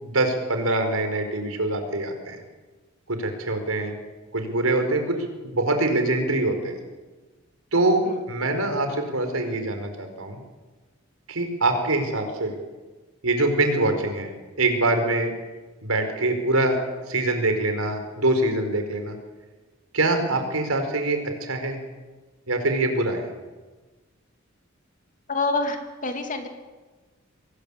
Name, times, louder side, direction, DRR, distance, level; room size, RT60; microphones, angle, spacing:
voice 1, 0.0-2.4 3.1-3.9 4.3-5.2 5.4-6.7 7.7-10.4 11.3-12.5 13.2-14.3 14.6-15.3 15.8-16.8 17.1-19.2 19.9-21.8 22.5-23.3, right 2 dB, 90° right, 6 dB, 4.8 m, -24 dB
voice 2, 25.3-26.5, left 3 dB, 40° left, 5 dB, 3.0 m, -27 dB
25.0 x 20.0 x 8.8 m, 1.3 s
head